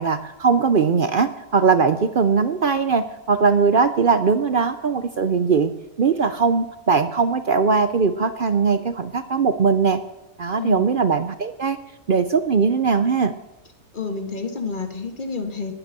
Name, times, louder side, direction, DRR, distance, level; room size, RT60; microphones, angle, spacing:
voice 1, 0.0-5.7 6.0-10.0 10.4-11.8 12.1-13.3, right 5 dB, 55° right, 11 dB, 0.6 m, -20 dB
voice 2, 13.9-15.7, left 4 dB, 35° left, 6 dB, 1.7 m, -29 dB
19.0 x 8.9 x 6.7 m, 1.0 s
omnidirectional pair, 1.6 m